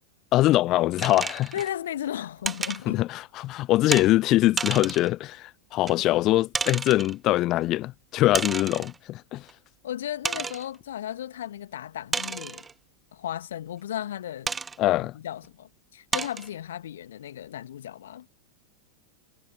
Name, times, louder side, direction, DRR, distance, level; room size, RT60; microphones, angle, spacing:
voice 1, 0.3-1.5 2.9-9.5 14.8-15.2, left 16 dB, 35° left, 0.3 m, -23 dB
sound 1, 1.0-1.7 2.4-2.8 3.9-4.1 4.6-5.1 5.9-6.0 6.5-7.1 8.3-9.0 9.5-9.6 10.2-10.7 12.1-12.7 14.5-14.8 15.4-15.5 16.1-16.5, right 4 dB, 15° right, 0.8 m, -31 dB
voice 2, 1.5-3.0 9.8-12.6 13.1-14.6 15.1-18.3, left 11 dB, 60° left, 2.2 m, -35 dB
figure-of-eight pair, 90°, 0 cm